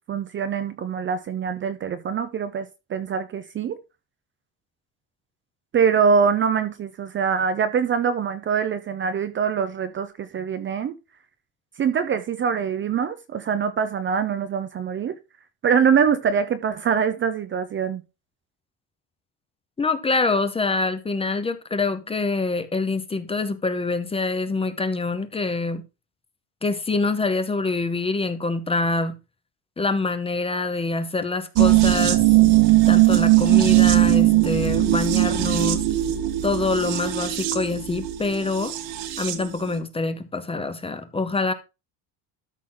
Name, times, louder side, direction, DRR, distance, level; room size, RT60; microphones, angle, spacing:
voice 1, 0.1-3.8 5.7-10.9 11.8-15.2 15.6-18.0, right 6 dB, 25° right, 0.6 m, -24 dB
voice 2, 19.8-25.8 26.6-29.2 29.8-35.8 36.4-38.7 39.2-41.5, left 3 dB, 15° left, 0.7 m, -25 dB
sound 1, 31.6-39.5 39.7-39.8, right 16 dB, 80° right, 1.6 m, -19 dB
13.0 x 6.0 x 3.8 m
cardioid pair, 175°, 44 cm